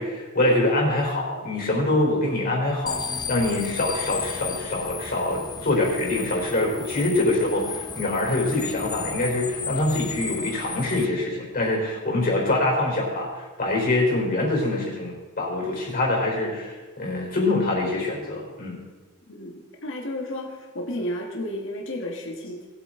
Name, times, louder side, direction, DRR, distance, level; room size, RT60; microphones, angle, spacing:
voice 1, 0.0-18.8, left 2 dB, 45° left, -1 dB, 4.1 m, -24 dB
sound 1, 2.9-11.1, left 6 dB, 20° left, 0.5 m, -34 dB
voice 2, 19.3-22.7, left 1 dB, 65° left, 1 dB, 1.7 m, -32 dB
20.0 x 8.6 x 3.9 m, 1.3 s
head